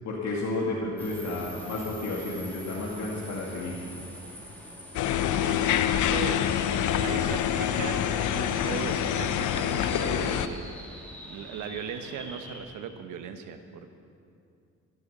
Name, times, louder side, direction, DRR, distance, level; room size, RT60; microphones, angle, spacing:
voice 1, 0.0-3.8, left 2 dB, 60° left, -4 dB, 2.4 m, -32 dB
sound 1, 1.0-12.6, equal, 5° left, 3.5 m, -45 dB
sound 2, 4.9-10.5, left 10 dB, 80° left, 0.7 m, -26 dB
voice 2, 5.4-11.0 11.3-14.0, right 7 dB, 90° right, 7 dB, 1.2 m, -38 dB
14.0 x 12.0 x 6.8 m, 2.4 s
cardioid pair, 90°, 30 cm